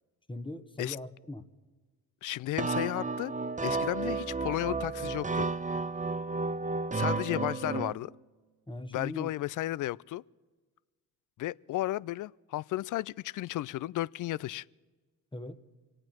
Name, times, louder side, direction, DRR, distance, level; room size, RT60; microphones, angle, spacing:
voice 1, 0.3-1.5 8.7-9.3 15.3-15.6, left 2 dB, 10° left, 1.2 m, -40 dB
voice 2, 2.2-3.3 3.6-5.5 6.9-8.1 8.9-10.2 11.4-14.6, left 15 dB, 50° left, 0.4 m, -33 dB
sound 1, 2.6-7.9, right 3 dB, 20° right, 0.8 m, -32 dB
24.5 x 8.9 x 6.1 m
supercardioid pair, 60°, 42 cm